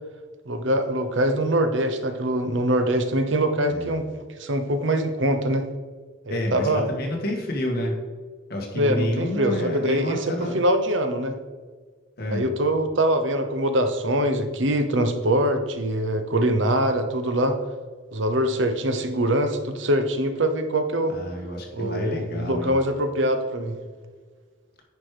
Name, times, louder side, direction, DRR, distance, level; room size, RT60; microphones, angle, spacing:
voice 1, 0.5-4.1 4.4-5.7 6.3-6.8 8.7-11.4 12.3-17.6 18.1-21.1 21.7-23.8, right 1 dB, 70° right, 8 dB, 0.9 m, -23 dB
voice 2, 6.3-8.0 8.5-10.6 12.2-12.5 21.1-22.8, left 1 dB, 50° left, 1 dB, 1.7 m, -29 dB
9.6 x 4.8 x 5.0 m, 1.5 s
head